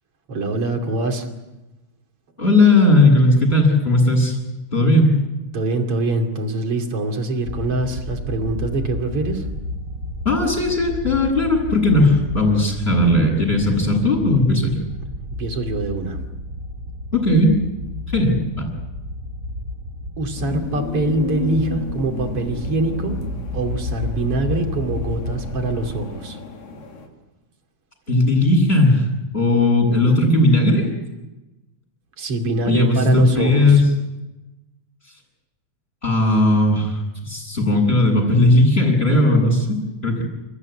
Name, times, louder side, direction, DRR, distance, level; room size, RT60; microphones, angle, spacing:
voice 1, 0.3-1.3 5.5-9.5 15.4-16.2 20.2-23.2 23.5-26.4 32.2-33.8, right 2 dB, 45° right, 4 dB, 3.4 m, -24 dB
voice 2, 2.4-4.4 4.7-5.1 10.2-14.8 17.1-17.5 18.1-18.7 28.1-29.0 29.3-30.8 32.6-33.8 36.0-40.2, left 2 dB, 15° left, -4 dB, 7.3 m, -17 dB
sound 1, 7.4-26.1, left 1 dB, 30° right, 2.5 m, -31 dB
sound 2, 20.4-27.1, left 5 dB, 80° left, 4.6 m, -34 dB
29.5 x 15.5 x 9.8 m, 1.1 s
omnidirectional pair, 3.9 m